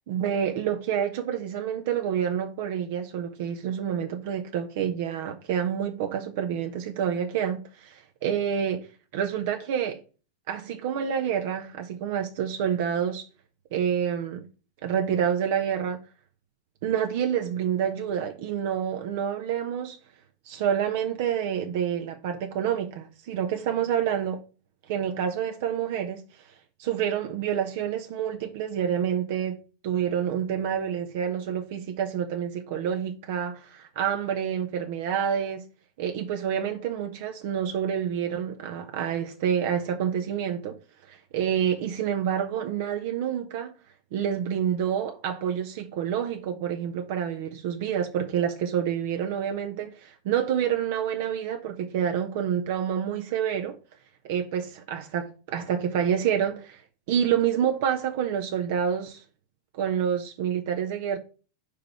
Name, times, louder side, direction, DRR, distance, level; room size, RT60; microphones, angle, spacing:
voice 1, 0.0-8.9 9.1-10.0 10.5-13.3 13.7-14.5 14.8-16.0 16.8-20.0 20.5-24.4 24.9-26.2 26.8-29.6 29.8-35.6 36.0-40.8 41.1-43.7 44.1-53.8 54.2-56.8 57.1-59.2 59.7-61.2, right 8 dB, 50° right, 1.0 m, -28 dB
5.2 x 5.2 x 5.6 m
figure-of-eight pair, 90°, 0 cm